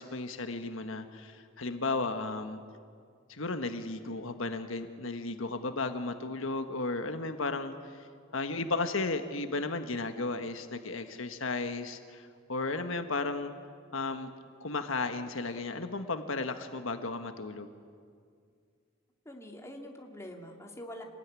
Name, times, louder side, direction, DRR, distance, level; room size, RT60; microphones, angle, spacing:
voice 1, 0.0-2.6 3.3-8.1 8.3-13.5 13.9-14.3 14.6-17.7, left 3 dB, 80° left, 7 dB, 1.4 m, -34 dB
voice 2, 19.3-21.0, left 1 dB, 15° left, 1 dB, 2.4 m, -45 dB
26.5 x 19.5 x 9.7 m, 2.2 s
head